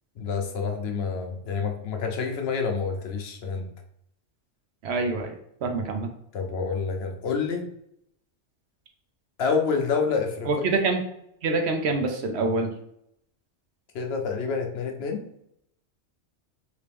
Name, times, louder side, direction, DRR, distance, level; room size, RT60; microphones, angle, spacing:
voice 1, 0.2-3.7 6.3-7.7 9.4-10.9 13.9-15.2, left 5 dB, 65° left, 3 dB, 0.7 m, -28 dB
voice 2, 4.8-6.1 10.5-11.0 11.4-12.7, right 3 dB, 65° right, 4 dB, 0.8 m, -26 dB
3.0 x 3.0 x 3.3 m, 0.74 s
omnidirectional pair, 1.2 m